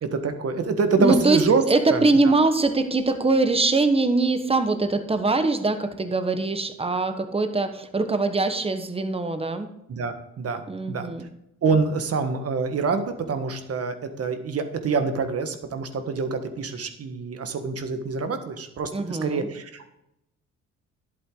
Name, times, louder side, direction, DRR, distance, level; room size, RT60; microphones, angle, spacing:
voice 1, 0.0-1.6 1.9-2.0 9.9-11.1 11.6-19.9, right 4 dB, 50° right, 7 dB, 1.4 m, -26 dB
voice 2, 1.0-1.4 1.7-9.7 10.7-11.3 18.9-19.5, right 3 dB, 20° right, 8 dB, 1.2 m, -22 dB
11.0 x 8.3 x 3.9 m, 0.83 s
cardioid pair, 90°, 30 cm